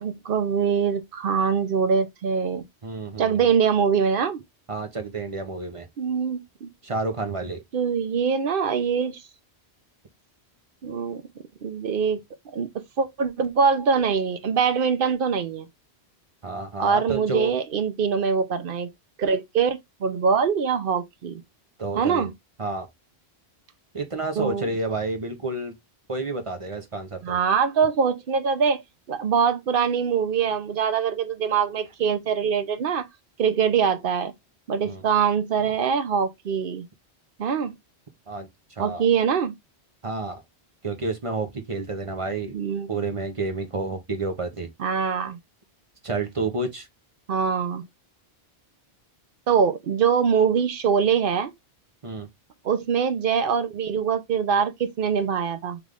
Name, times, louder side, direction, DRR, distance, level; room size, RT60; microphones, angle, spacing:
voice 1, 0.0-2.6 3.2-4.4 6.0-6.7 7.7-9.2 10.8-11.2 11.6-12.2 12.5-12.7 13.0-15.7 16.8-18.9 19.2-21.4 22.0-22.3 24.4-24.7 27.2-28.8 29.1-33.0 33.4-34.3 34.7-36.9 37.4-37.7 38.8-39.6 42.5-42.9 44.8-45.4 47.3-47.8 49.5-51.5 52.6-55.8, right 6 dB, 60° right, 0.8 m, -23 dB
voice 2, 2.8-3.5 4.7-5.9 6.8-7.6 16.4-17.5 21.8-22.3 22.6-22.9 23.9-25.7 26.1-27.4 34.8-35.0 38.3-38.5 38.8-39.0 40.0-40.4 40.8-42.6 42.9-44.7 46.0-46.9 52.0-52.3, right 3 dB, 35° right, 0.7 m, -30 dB
3.4 x 3.2 x 3.6 m
omnidirectional pair, 1.1 m